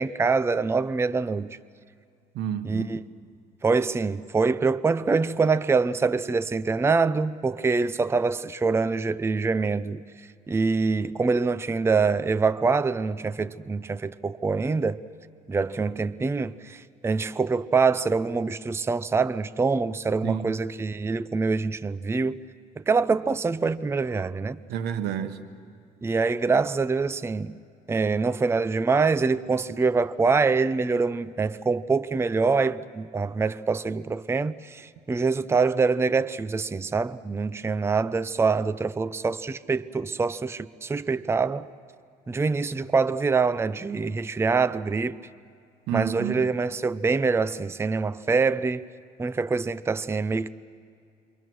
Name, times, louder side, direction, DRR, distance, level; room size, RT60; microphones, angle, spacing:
voice 1, 0.0-1.5 2.6-3.0 3.6-10.0 10.5-15.0 15.5-22.4 22.8-24.6 26.0-27.5 27.9-41.7 42.3-45.2 45.9-48.9 49.2-50.5, right 4 dB, 15° right, 0.5 m, -25 dB
voice 2, 2.3-2.9 20.2-20.5 24.7-25.4 45.9-46.5, right 9 dB, 80° right, 1.4 m, -30 dB
28.0 x 24.0 x 6.3 m
cardioid pair, 110°, 17 cm